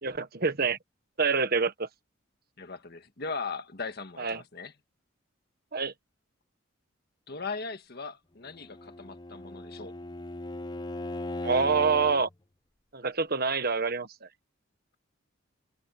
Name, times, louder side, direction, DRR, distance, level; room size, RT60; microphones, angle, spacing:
voice 1, 0.0-0.8 1.2-1.9 4.2-4.4 5.7-5.9 11.4-12.3 12.9-14.1, right 4 dB, 50° right, 1.4 m, -26 dB
voice 2, 2.6-4.7 7.3-9.9, left 4 dB, 50° left, 1.6 m, -38 dB
Bowed string instrument, 8.5-12.3, left 2 dB, 20° left, 0.7 m, -38 dB
head